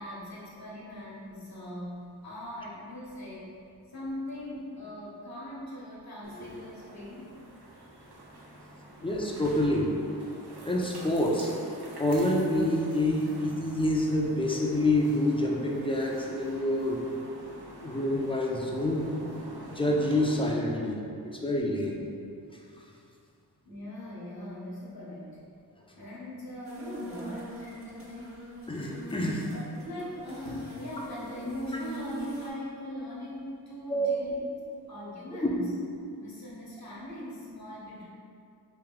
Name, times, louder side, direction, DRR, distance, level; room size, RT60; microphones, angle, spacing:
voice 1, 0.0-3.5 3.9-7.3 23.6-25.4 25.9-28.3 29.5-34.6 34.9-35.7 36.2-38.1, left 1 dB, 60° left, -7 dB, 1.0 m, -40 dB
sound 1, 6.2-20.4, right 1 dB, 65° right, 0.7 m, -47 dB
voice 2, 9.0-9.9 10.7-11.5 12.0-17.0 17.8-19.1 19.7-22.0 28.7-29.5 33.9-34.1, left 1 dB, 15° left, -2 dB, 0.5 m, -27 dB
sound 2, 26.6-32.5, right 1 dB, 35° right, 0.8 m, -44 dB
3.3 x 2.6 x 3.7 m, 2.5 s
cardioid pair, 45°, 40 cm